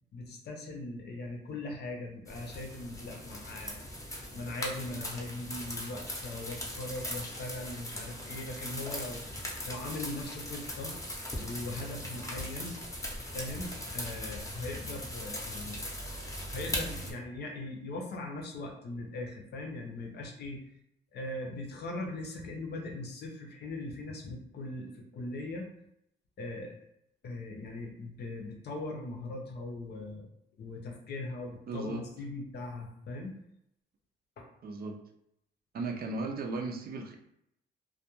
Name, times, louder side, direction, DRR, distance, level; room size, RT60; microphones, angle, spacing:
voice 1, 0.1-3.9 4.3-9.2 9.7-11.0 11.4-12.8 13.1-15.8 16.5-20.6 21.1-25.7 26.4-26.8 27.2-30.3 30.6-33.4 34.4-34.5, left 2 dB, 55° left, 2 dB, 0.6 m, -40 dB
sound 1, 2.3-17.1, left 1 dB, 15° left, 0.7 m, -39 dB
voice 2, 31.7-32.0 34.6-35.0 35.7-37.2, right 3 dB, 50° right, 2 dB, 0.5 m, -36 dB
2.3 x 2.2 x 2.9 m, 0.77 s
cardioid pair, 90°, 20 cm